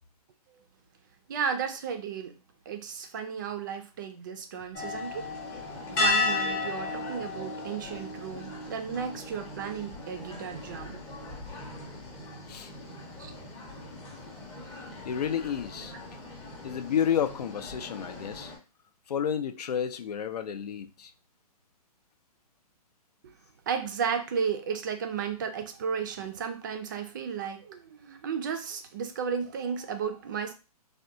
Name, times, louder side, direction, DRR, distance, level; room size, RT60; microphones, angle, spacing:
voice 1, 1.3-2.4 2.7-5.3 5.9-11.0 13.2-13.4 23.7-30.5, right 6 dB, 30° right, 0.4 m, -34 dB
sound 1, 4.7-18.6, left 3 dB, 15° left, 0.6 m, -35 dB
voice 2, 15.0-15.9 16.6-18.5 19.1-21.1, left 8 dB, 85° left, 0.5 m, -30 dB
3.4 x 2.2 x 2.7 m
hypercardioid pair, 160°, 20 cm